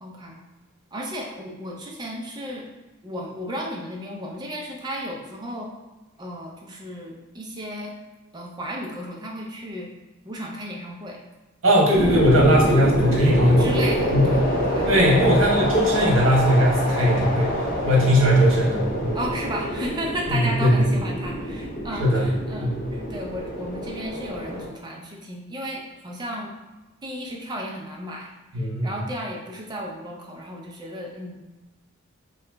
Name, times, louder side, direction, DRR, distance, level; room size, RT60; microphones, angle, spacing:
voice 1, 0.0-0.4 0.9-2.7 3.0-5.7 6.2-7.9 8.3-9.9 10.2-11.2 13.6-15.4 19.1-26.5 27.0-31.4, equal, 20° right, -1 dB, 0.5 m, -34 dB
voice 2, 11.6-13.7 14.1-14.3 14.9-17.5 17.8-19.2 20.3-20.8 22.0-22.2 22.6-22.7 28.5-28.9, equal, 75° right, -3 dB, 1.0 m, -19 dB
sound 1, 11.9-24.7, equal, 45° left, 0.6 m, -26 dB
2.9 x 2.3 x 3.3 m, 1.1 s
head